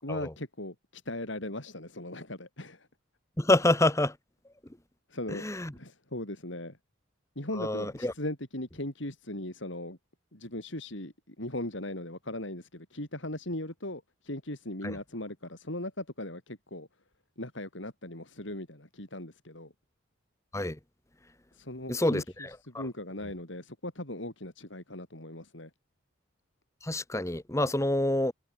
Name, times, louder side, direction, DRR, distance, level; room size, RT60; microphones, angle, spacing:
voice 1, 0.0-2.9 5.1-5.4 5.7-6.8 7.3-10.0 10.3-16.9 17.4-19.7 21.5-25.7, left 1 dB, 65° left, 4.9 m, -38 dB
voice 2, 3.4-4.1 5.4-5.7 7.6-8.1 14.8-14.9 20.5-20.8 21.9-22.2 26.8-28.3, left 1 dB, 15° left, 1.1 m, -26 dB
head